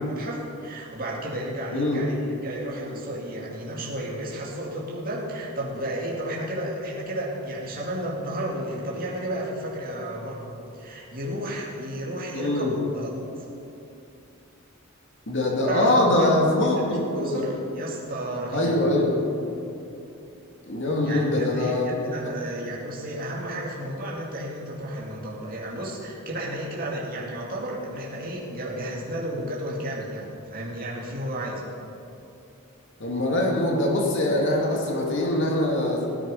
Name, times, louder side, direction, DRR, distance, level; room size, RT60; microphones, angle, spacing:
voice 1, 0.1-2.2 2.4-13.2 15.7-18.9 21.0-31.7, right 1 dB, 40° right, -4 dB, 2.3 m, -33 dB
voice 2, 1.7-2.0 12.3-12.8 15.3-17.4 18.5-19.4 20.7-22.1 33.0-36.1, left 1 dB, 55° left, -1 dB, 2.4 m, -23 dB
17.5 x 10.0 x 5.4 m, 2.8 s
head